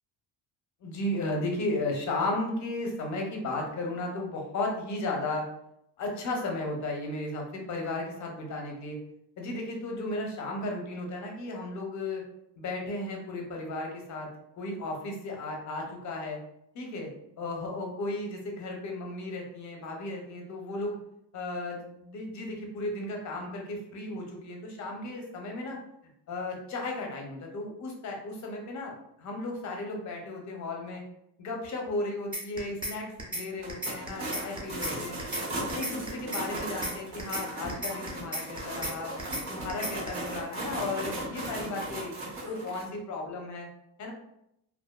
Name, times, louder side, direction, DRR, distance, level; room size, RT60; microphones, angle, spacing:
voice 1, 0.8-5.5 6.0-9.0 9.4-12.2 12.6-14.3 14.5-16.4 16.7-17.1 17.4-21.0 21.3-25.8 26.3-31.0 31.4-35.2 35.6-39.1 39.5-42.1 42.5-43.7 44.0-44.1, left 2 dB, 40° left, 1 dB, 0.6 m, -34 dB
sound 1, 32.3-32.9 33.2-33.4 33.7-34.9 35.2-35.4 35.7-36.9 37.2-37.4 37.7-38.9 39.2-39.4 39.7-40.1, right 1 dB, 10° right, 0.4 m, -34 dB
sound 2, 33.6-42.8, right 1 dB, 80° right, 1.1 m, -37 dB
2.5 x 2.2 x 2.2 m, 0.79 s
cardioid pair, 145°, 44 cm